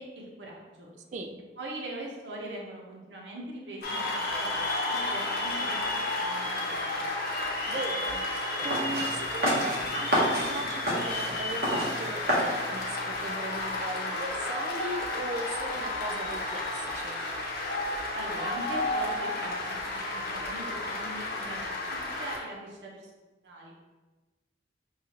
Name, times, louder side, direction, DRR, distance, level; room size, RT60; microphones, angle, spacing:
voice 1, 0.0-0.9 1.6-7.1 18.1-21.7 22.2-23.1 23.4-23.8, right 1 dB, 85° right, -2 dB, 0.8 m, -41 dB
voice 2, 1.1-1.4 7.6-17.2, right 2 dB, 40° right, 6 dB, 0.3 m, -38 dB
Cheering / Applause, 3.8-22.4, left 2 dB, 55° left, 0.8 m, -32 dB
sound 1, 8.7-13.7, equal, 60° right, 1.1 m, -30 dB
5.5 x 2.4 x 2.9 m, 1.2 s
head